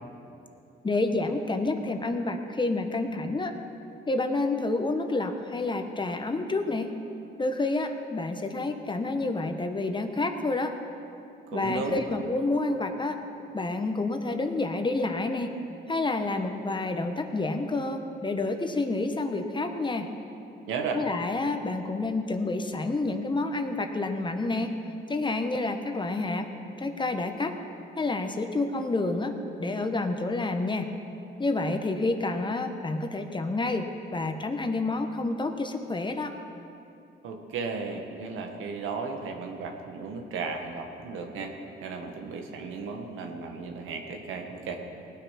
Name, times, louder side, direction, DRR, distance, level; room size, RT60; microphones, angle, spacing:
voice 1, 0.8-3.6 4.1-6.9 7.4-10.8 11.5-13.2 13.5-15.6 15.9-20.1 20.9-24.8 25.1-26.5 26.8-27.6 28.0-30.9 31.4-33.9 34.1-36.4, left 2 dB, 25° left, 6 dB, 1.2 m, -29 dB
voice 2, 11.5-12.0 20.7-21.0 37.2-44.8, right 4 dB, 85° right, 3 dB, 1.6 m, -35 dB
18.5 x 9.0 x 5.8 m, 2.7 s
cardioid pair, 90°, 20 cm